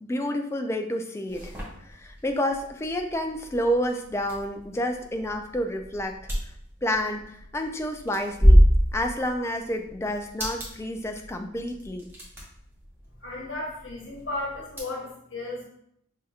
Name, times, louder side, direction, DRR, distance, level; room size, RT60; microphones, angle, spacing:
voice 1, 0.0-1.5 1.8-6.3 6.8-8.6 8.9-12.1, equal, 15° left, 4 dB, 0.3 m, -29 dB
sound 1, 1.3-14.8, equal, 10° right, 0.9 m, -27 dB
voice 2, 13.2-15.6, left 2 dB, 80° left, -3 dB, 1.0 m, -34 dB
5.5 x 2.7 x 2.4 m, 0.72 s
head